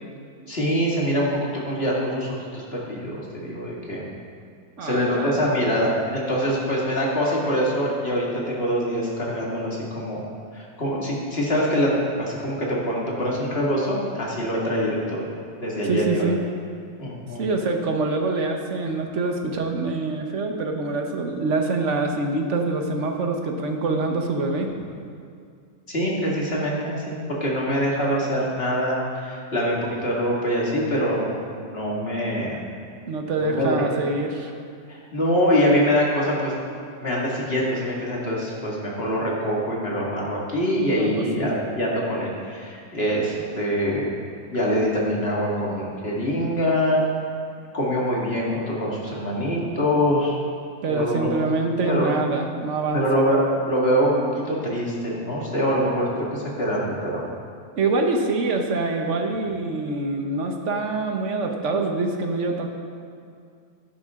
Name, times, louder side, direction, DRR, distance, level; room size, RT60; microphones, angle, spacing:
voice 1, 0.5-1.3 1.7-4.0 4.8-10.2 10.5-15.2 15.6-16.3 17.0-17.5 25.9-32.7 33.4-33.8 34.9-36.5 37.0-44.1 44.5-47.0 47.7-50.4 50.9-51.3 51.9-52.1 52.9-54.2 54.5-57.2, equal, 40° left, -4 dB, 2.4 m, -24 dB
voice 2, 4.8-5.5 15.8-16.4 17.4-24.7 33.1-34.5 41.0-41.5 50.8-53.2 57.8-62.7, right 3 dB, 50° right, 3 dB, 1.4 m, -25 dB
13.0 x 11.0 x 3.7 m, 2.3 s
omnidirectional pair, 1.7 m